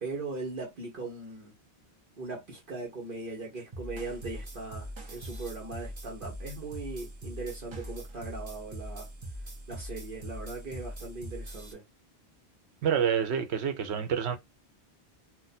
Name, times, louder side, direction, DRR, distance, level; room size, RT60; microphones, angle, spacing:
voice 1, 0.0-1.5 2.2-9.1 9.7-11.8, right 3 dB, 55° right, 1.1 m, -39 dB
sound 1, 3.7-11.7, right 1 dB, 35° right, 0.6 m, -42 dB
voice 2, 12.8-14.4, right 8 dB, 80° right, 0.9 m, -27 dB
2.5 x 2.2 x 4.0 m
omnidirectional pair, 1.1 m